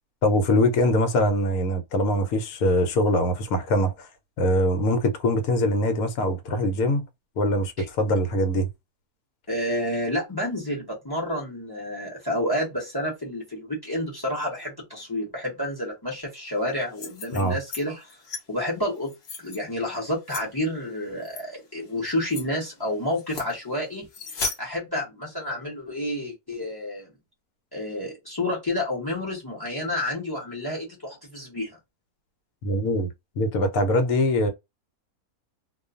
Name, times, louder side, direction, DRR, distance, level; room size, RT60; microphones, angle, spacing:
voice 1, 0.2-4.1 4.4-7.0 7.4-8.7 17.3-17.6 32.6-33.1 33.4-34.5, left 1 dB, 70° left, 1.1 m, -23 dB
voice 2, 9.5-18.2 18.5-19.1 19.4-27.1 27.7-31.8, left 1 dB, 20° left, 0.7 m, -30 dB
sound 1, 16.8-17.8 18.1-18.4 19.0-19.6 20.3-20.4 21.3-21.4 21.9-22.0 22.3-22.4 23.1-23.5 24.1-24.6, left 4 dB, 50° left, 0.8 m, -34 dB
2.4 x 2.3 x 2.4 m
omnidirectional pair, 1.7 m